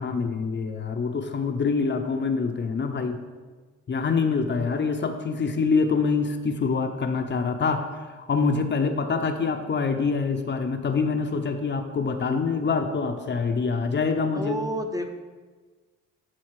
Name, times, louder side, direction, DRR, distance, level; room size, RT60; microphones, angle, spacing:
voice 1, 0.0-3.2 3.9-14.6, left 4 dB, 40° left, 6 dB, 0.7 m, -25 dB
voice 2, 14.3-15.1, equal, 10° right, 4 dB, 0.7 m, -30 dB
12.0 x 4.1 x 4.7 m, 1.4 s
cardioid pair, 90°, 30 cm